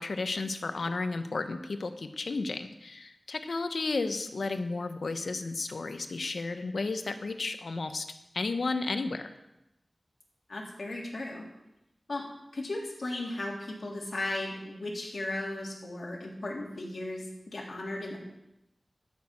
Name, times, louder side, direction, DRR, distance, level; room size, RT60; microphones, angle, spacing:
voice 1, 0.0-8.0 8.3-9.3, left 3 dB, 90° left, 8 dB, 0.9 m, -33 dB
voice 2, 10.5-11.4 12.1-12.2 12.5-18.2, left 2 dB, 70° left, -2 dB, 3.3 m, -36 dB
12.5 x 6.3 x 8.6 m, 0.92 s
wide cardioid pair, 75°, 0 cm